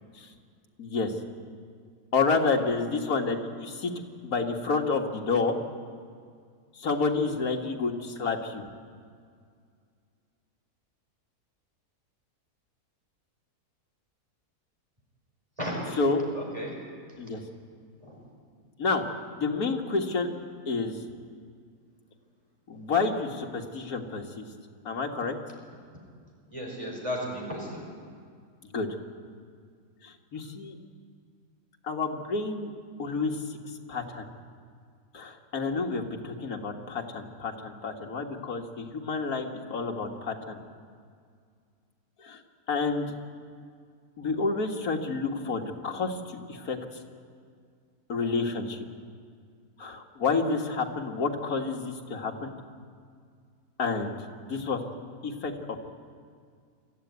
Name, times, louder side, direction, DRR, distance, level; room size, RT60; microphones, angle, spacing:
voice 1, 0.8-1.1 2.1-3.9 4.2-5.6 6.8-8.6 16.0-16.2 17.2-17.4 18.8-19.0 19.3-20.3 20.7-20.9 22.7-24.5 24.9-25.4 28.7-28.9 30.0-30.8 31.9-32.7 33.0-33.6 33.9-34.3 35.1-40.6 42.2-42.4 42.7-43.1 44.2-46.8 48.1-48.8 49.8-52.6 53.8-54.2 54.5-54.8 55.2-55.9, left 4 dB, 65° left, 2 dB, 2.2 m, -29 dB
voice 2, 15.6-16.0 16.3-16.8 18.0-18.2 22.7-22.9 26.5-27.9, equal, 20° right, -2 dB, 5.2 m, -35 dB
25.0 x 14.5 x 9.5 m, 2.1 s
omnidirectional pair, 1.7 m